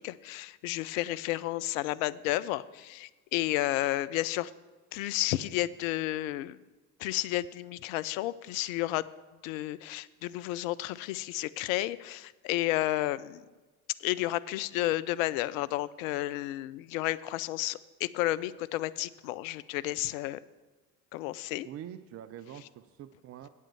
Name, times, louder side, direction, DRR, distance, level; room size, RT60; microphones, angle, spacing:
voice 1, 0.0-4.5 4.9-6.6 7.0-9.1 9.4-13.4 14.0-20.4 21.1-21.7, left 16 dB, 65° left, 18 dB, 0.5 m, -32 dB
voice 2, 21.6-23.5, right 10 dB, 35° right, 12 dB, 0.4 m, -45 dB
8.5 x 5.5 x 7.8 m, 1.2 s
hypercardioid pair, 60°, 43 cm